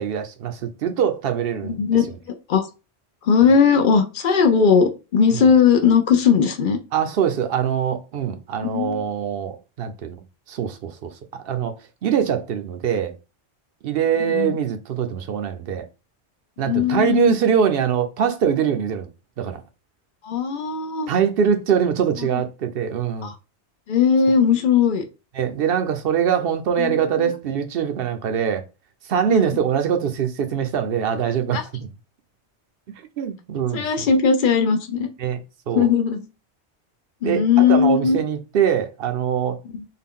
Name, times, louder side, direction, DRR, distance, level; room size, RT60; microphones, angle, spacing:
voice 1, 0.0-1.8 5.3-5.4 6.9-11.7 12.0-13.2 13.8-15.9 16.6-19.1 19.4-19.6 21.1-23.3 25.4-28.6 29.1-31.6 33.2-34.1 35.2-35.4 35.7-35.9 37.2-39.6, right 8 dB, 60° right, 0.8 m, -23 dB
voice 2, 1.6-2.1 2.5-2.7 3.2-6.8 8.6-9.0 14.2-14.5 16.6-17.4 20.2-21.1 22.2-22.4 23.2-23.3 23.9-25.0 26.8-27.3 29.3-29.5 31.5-31.6 33.7-35.1 35.7-36.3 37.2-38.2 39.7-39.8, left 6 dB, 55° left, 0.6 m, -18 dB
3.7 x 2.2 x 3.6 m
omnidirectional pair, 1.1 m